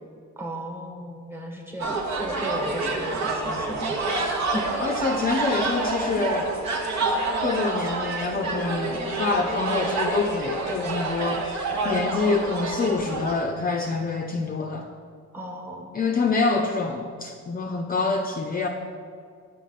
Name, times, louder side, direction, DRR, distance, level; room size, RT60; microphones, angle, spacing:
voice 1, 0.4-3.9 4.5-5.0 15.3-15.9, equal, 10° right, 1 dB, 1.3 m, -35 dB
sound 1, 1.8-13.3, right 3 dB, 65° right, 1.1 m, -28 dB
voice 2, 4.8-6.5 7.4-11.6 11.8-14.9 15.9-18.7, left 4 dB, 30° left, 2 dB, 0.5 m, -26 dB
6.1 x 5.7 x 4.1 m, 2.2 s
cardioid pair, 90°, 30 cm